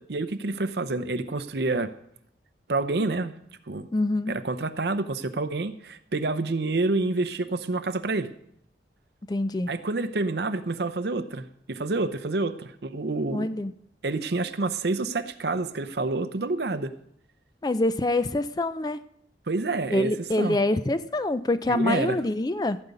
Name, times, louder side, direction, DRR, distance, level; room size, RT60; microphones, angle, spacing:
voice 1, 0.0-1.9 2.7-3.4 3.7-3.9 4.3-8.3 9.7-13.6 14.0-16.9 19.5-20.6 21.7-22.2, right 3 dB, 65° right, 12 dB, 0.7 m, -28 dB
voice 2, 3.9-4.4 9.3-9.7 13.3-13.7 17.6-19.0 19.9-22.8, left 2 dB, 20° left, 13 dB, 0.4 m, -25 dB
15.5 x 5.3 x 8.2 m, 0.70 s
head